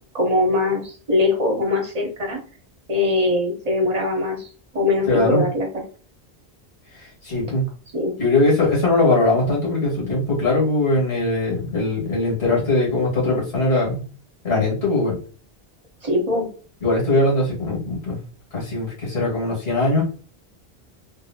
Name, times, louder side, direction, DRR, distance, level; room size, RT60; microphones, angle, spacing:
voice 1, 0.1-2.4 2.9-4.5 4.7-5.7 7.9-8.1 16.0-16.5, left 2 dB, 40° right, 0 dB, 1.1 m, -21 dB
voice 2, 5.1-5.5 7.2-7.6 8.2-14.0 14.4-15.2 16.8-18.2 18.5-20.0, left 2 dB, 75° left, -4 dB, 2.2 m, -20 dB
3.5 x 2.7 x 2.7 m, 0.39 s
omnidirectional pair, 1.1 m